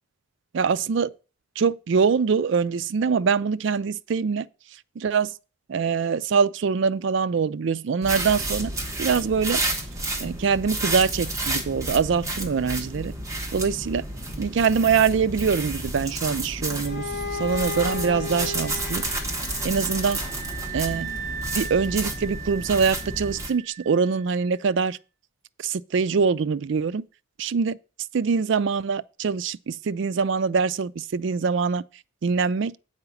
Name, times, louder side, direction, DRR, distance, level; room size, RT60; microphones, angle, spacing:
voice 1, 0.5-1.1 1.6-4.5 5.0-5.3 5.7-8.7 9.0-9.6 10.2-13.1 13.5-14.0 14.4-19.1 19.6-20.2 20.7-21.1 21.5-25.0 25.6-27.0 27.4-27.8 28.1-31.8 32.2-32.8, right 5 dB, 60° right, 0.4 m, -24 dB
sound 1, 8.0-23.5, right 2 dB, 15° right, 1.2 m, -31 dB
Bowed string instrument, 16.8-21.6, left 4 dB, 55° left, 1.9 m, -35 dB
sound 2, 17.5-24.3, right 8 dB, 40° right, 2.5 m, -39 dB
8.1 x 4.8 x 7.0 m
head